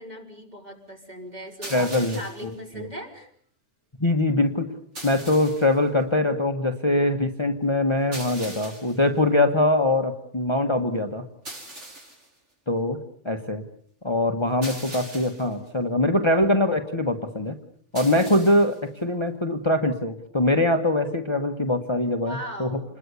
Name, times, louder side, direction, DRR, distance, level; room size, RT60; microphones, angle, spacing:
voice 1, 0.0-3.3 22.2-23.0, equal, 35° right, 1 dB, 5.2 m, -38 dB
sound 1, 1.6-2.5 5.0-5.8 8.1-9.0 11.5-12.3 14.6-15.5 18.0-18.8, right 1 dB, 65° right, 5.6 m, -40 dB
voice 2, 1.7-2.5 2.8-2.9 4.0-4.8 5.0-11.3 12.7-13.0 13.2-13.6 14.0-17.6 17.9-22.8, left 1 dB, 25° left, 6 dB, 1.4 m, -23 dB
28.0 x 21.0 x 8.3 m, 0.62 s
omnidirectional pair, 1.3 m